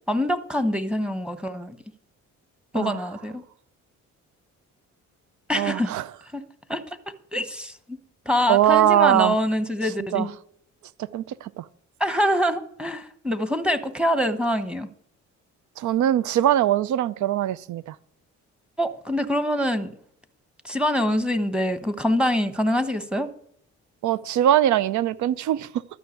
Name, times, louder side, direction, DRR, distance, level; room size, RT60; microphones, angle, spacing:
voice 1, 0.1-1.8 2.7-3.4 5.5-5.9 6.3-6.4 6.7-6.8 7.3-8.0 8.2-10.3 12.0-14.9 18.8-19.9 20.6-23.3, equal, 5° right, 1.1 m, -25 dB
voice 2, 5.5-6.0 8.5-9.4 10.1-10.3 11.1-11.6 15.8-17.9 24.0-25.7, right 12 dB, 70° right, 0.6 m, -21 dB
12.5 x 5.8 x 8.4 m
cardioid pair, 90°, 30 cm